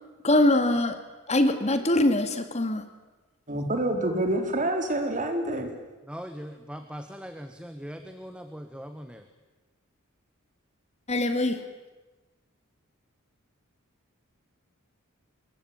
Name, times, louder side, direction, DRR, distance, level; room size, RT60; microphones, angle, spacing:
voice 1, 0.2-1.0 1.3-2.8 11.1-11.6, left 1 dB, 30° left, 8 dB, 2.2 m, -23 dB
voice 2, 3.5-5.7, right 1 dB, 40° right, 5 dB, 4.1 m, -27 dB
voice 3, 6.1-9.2, equal, 5° right, 7 dB, 1.4 m, -40 dB
27.0 x 22.5 x 8.9 m, 1.2 s
head